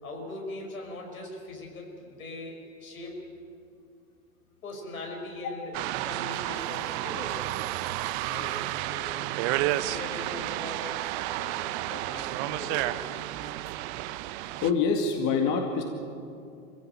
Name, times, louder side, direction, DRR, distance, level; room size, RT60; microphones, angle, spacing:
voice 1, 0.0-3.2 4.6-5.7 6.0-7.6 8.3-8.6 8.9-9.3 9.5-13.2, left 2 dB, 85° left, 0 dB, 5.6 m, -41 dB
sound 1, 5.7-14.7, right 15 dB, 55° right, 0.9 m, -31 dB
voice 2, 14.6-15.8, left 5 dB, 45° left, 3 dB, 2.3 m, -25 dB
24.5 x 16.5 x 8.8 m, 2.5 s
hypercardioid pair, 100°, 41 cm